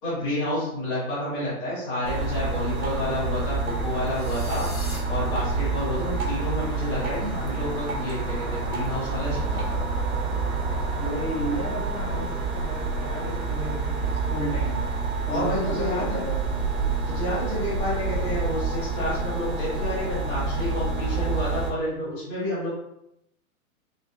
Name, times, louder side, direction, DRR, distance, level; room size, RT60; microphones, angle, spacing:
voice 1, 0.0-4.7 5.1-9.8 15.3-16.2 17.1-22.7, left 1 dB, 15° left, -11 dB, 1.4 m, -29 dB
sound 1, 2.0-21.7, right 3 dB, 65° right, 0.8 m, -28 dB
Drip, 2.8-9.8, right 2 dB, 90° right, 1.4 m, -41 dB
sound 2, 4.1-5.0, left 1 dB, 45° left, 1.5 m, -40 dB
voice 2, 11.0-14.9 15.3-16.6, left 1 dB, 85° left, -3 dB, 1.3 m, -33 dB
3.7 x 2.2 x 2.2 m, 0.81 s
hypercardioid pair, 170°, 43 cm